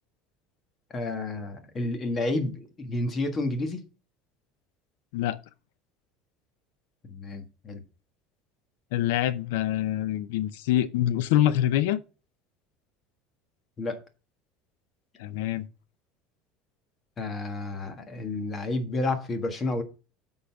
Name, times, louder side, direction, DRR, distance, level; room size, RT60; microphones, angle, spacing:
voice 1, 0.9-3.8 7.0-7.8 13.8-14.0 17.2-19.8, left 2 dB, 25° left, 1.4 m, -30 dB
voice 2, 8.9-12.0 15.2-15.7, left 12 dB, 90° left, 0.6 m, -25 dB
8.4 x 4.0 x 5.8 m
cardioid pair, 150°, 0 cm